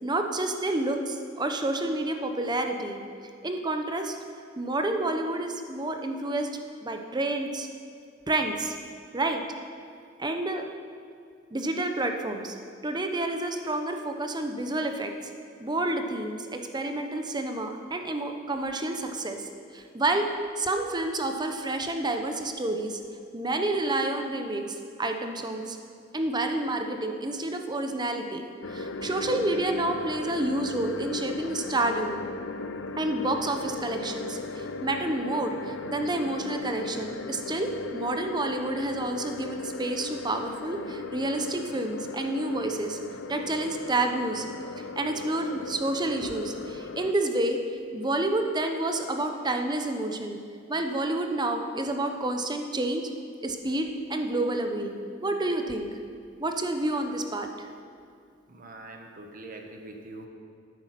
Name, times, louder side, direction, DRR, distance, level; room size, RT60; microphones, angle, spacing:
voice 1, 0.0-3.0 3.4-4.2 4.6-7.7 8.3-8.8 9.1-9.4 10.2-10.6 11.5-12.6 12.8-15.1 15.6-19.5 19.7-23.0 23.3-25.8 26.1-28.4 28.7-32.2 33.0-43.0 43.3-44.4 45.0-47.6 47.9-50.4 50.7-53.0 53.4-54.9 55.2-55.9 56.4-57.7, right 2 dB, 20° right, 5 dB, 0.9 m, -29 dB
sound 1, 28.6-47.1, left 3 dB, 65° left, 0.6 m, -37 dB
voice 2, 58.5-60.3, right 2 dB, 45° right, 3 dB, 1.3 m, -43 dB
12.5 x 9.5 x 5.9 m, 2.4 s
head